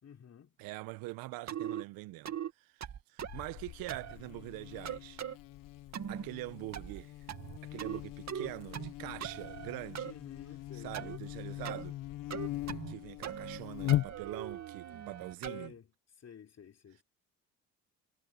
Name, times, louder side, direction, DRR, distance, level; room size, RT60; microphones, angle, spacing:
voice 1, 0.0-0.5 10.0-11.2 15.4-15.9 16.2-17.0, left 7 dB, 45° left, 3.6 m, -51 dB
voice 2, 0.6-2.8 3.1-5.2 6.1-7.1 7.6-10.1 10.7-12.0 12.9-15.8, right 19 dB, 80° right, 1.3 m, -44 dB
sound 1, 1.5-1.8 2.3-2.5 2.8-3.5 3.9-4.2 4.9-5.4 5.9-6.3 6.7-7.0 7.3-8.0 8.3-8.9 9.2-10.1 10.9-11.2 11.6-11.8 12.3-13.0 13.2-13.6 13.9-15.7, right 9 dB, 50° right, 2.4 m, -40 dB
Buzz, 3.2-14.6, left 15 dB, 70° left, 1.2 m, -40 dB
supercardioid pair, 65°, 34 cm